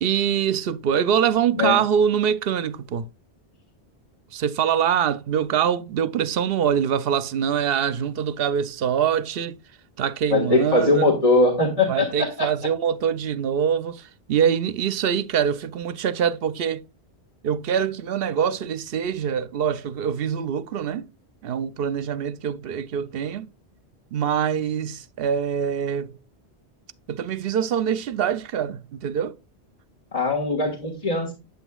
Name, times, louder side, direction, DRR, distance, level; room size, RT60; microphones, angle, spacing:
voice 1, 0.0-3.1 4.3-9.6 10.0-11.1 11.9-14.0 14.3-16.8 17.4-21.1 21.4-23.5 24.1-26.1 27.1-29.3, right 8 dB, 65° right, 0.8 m, -24 dB
voice 2, 10.3-12.5 30.1-31.3, left 2 dB, 35° left, 1.7 m, -21 dB
8.3 x 8.1 x 2.3 m
omnidirectional pair, 1.1 m